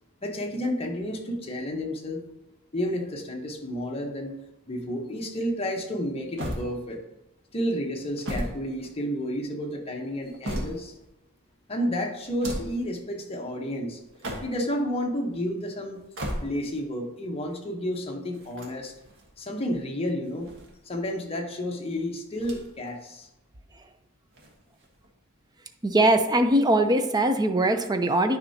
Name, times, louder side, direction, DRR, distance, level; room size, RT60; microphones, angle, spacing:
voice 1, 0.2-2.2 2.7-4.3 4.7-7.0 7.5-11.0 11.7-14.0 14.4-16.0 16.4-18.9 19.4-20.5 20.8-23.3, equal, 30° left, 1 dB, 1.0 m, -31 dB
sound 1, 6.4-7.2 8.0-9.4 10.0-11.1 12.2-12.9 14.0-14.8 15.9-16.8 18.3-19.3 20.2-21.1 22.3-22.9 23.2-23.3 24.3-25.1, equal, 65° right, 1.4 m, -36 dB
voice 2, 25.8-28.4, right 1 dB, 20° right, 7 dB, 0.5 m, -21 dB
9.7 x 5.5 x 2.8 m, 0.89 s
head